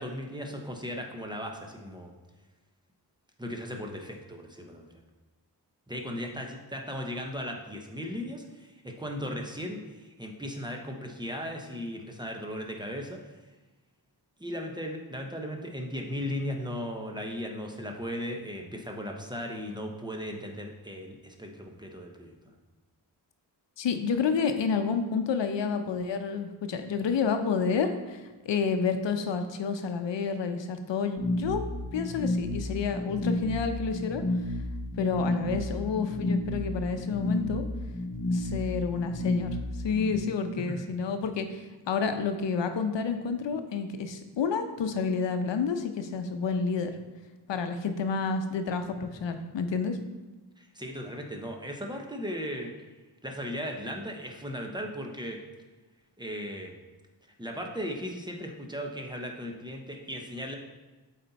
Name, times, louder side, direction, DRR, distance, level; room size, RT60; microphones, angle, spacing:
voice 1, 0.0-2.1 3.4-4.9 5.9-13.3 14.4-22.5 40.7-40.8 50.6-52.7 53.2-55.4 56.2-56.8 57.4-60.5, equal, 10° right, 1 dB, 0.9 m, -37 dB
voice 2, 23.8-31.6 31.9-34.2 34.9-37.6 38.3-39.5 39.8-46.9 47.5-50.0, left 5 dB, 85° left, 7 dB, 0.7 m, -29 dB
sound 1, 31.2-40.2, left 1 dB, 20° left, 0.7 m, -32 dB
7.6 x 4.3 x 4.0 m, 1.2 s
wide cardioid pair, 95°, 42 cm